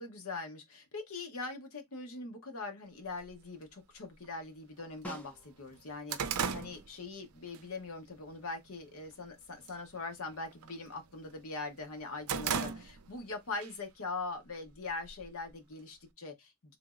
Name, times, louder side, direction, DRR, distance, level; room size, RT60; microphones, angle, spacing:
voice 1, 0.0-16.8, left 3 dB, 75° left, 0.9 m, -42 dB
sound 1, 3.2-3.3 4.2-4.3 4.8-4.9 5.2-7.6 8.0-8.3 8.8-9.3 9.6-9.9 10.2-11.4 11.8-13.3 13.6-13.7 14.6-15.5, right 6 dB, 80° right, 0.5 m, -37 dB
Snare drum, 5.0-6.0 10.4-10.5, equal, 5° left, 0.4 m, -47 dB
3.4 x 3.0 x 2.4 m
head